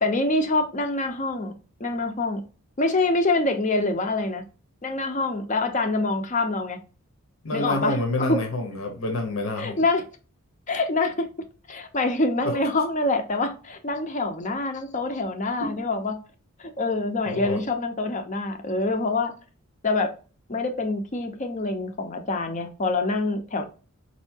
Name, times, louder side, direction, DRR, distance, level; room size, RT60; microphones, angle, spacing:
voice 1, 0.0-1.5 1.8-2.4 2.8-4.4 4.8-6.8 7.5-8.4 9.6-10.0 10.7-11.3 11.7-16.2 16.6-19.3 19.8-20.1 20.5-23.7, left 2 dB, 35° left, 7 dB, 0.5 m, -25 dB
voice 2, 7.4-9.8 12.4-12.7 15.6-15.7 17.3-17.6, left 1 dB, 65° left, 5 dB, 0.8 m, -27 dB
4.4 x 2.7 x 2.7 m, 0.36 s
head